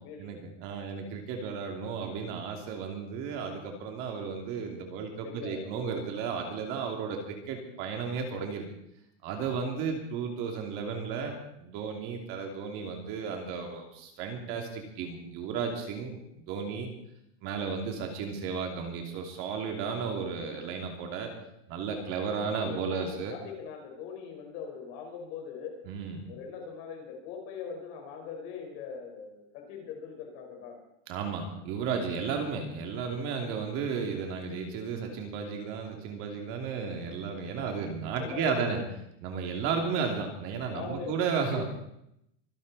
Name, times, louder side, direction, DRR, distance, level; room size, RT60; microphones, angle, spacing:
voice 1, 0.2-8.6 9.2-16.9 17.4-21.3 21.7-23.3 25.9-26.2 31.1-38.8 39.2-41.7, right 5 dB, 35° right, 3 dB, 2.9 m, -34 dB
voice 2, 5.2-6.0 9.5-9.8 21.9-25.8 26.3-30.8 37.6-37.9 38.2-38.8 40.7-41.7, left 6 dB, 40° left, 2 dB, 4.9 m, -41 dB
24.5 x 12.0 x 4.2 m, 0.77 s
supercardioid pair, 170°, 37 cm